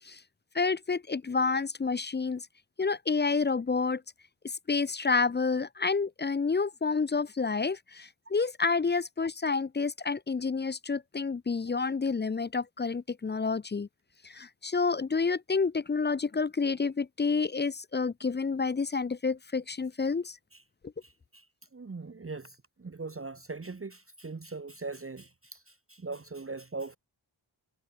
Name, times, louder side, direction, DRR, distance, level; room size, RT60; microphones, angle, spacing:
voice 1, 0.5-2.4 2.8-4.0 4.7-13.9 14.3-20.4, left 4 dB, 25° left, 0.4 m, -29 dB
voice 2, 21.0-21.5 21.7-27.0, right 3 dB, 30° right, 0.9 m, -41 dB
wide cardioid pair, 85°, 45 cm